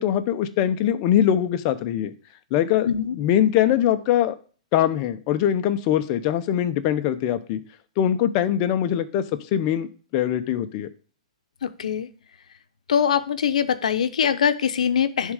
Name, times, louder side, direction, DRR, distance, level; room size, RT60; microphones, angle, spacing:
voice 1, 0.0-2.1 2.5-2.9 3.1-4.3 4.7-7.6 8.0-9.2 9.5-9.9 10.1-10.9, left 10 dB, 35° left, 9 dB, 0.7 m, -22 dB
voice 2, 2.8-3.1 11.6-12.1 12.9-15.3, left 8 dB, 85° left, 11 dB, 0.8 m, -22 dB
11.0 x 3.7 x 4.9 m, 0.40 s
hypercardioid pair, 155°, 4 cm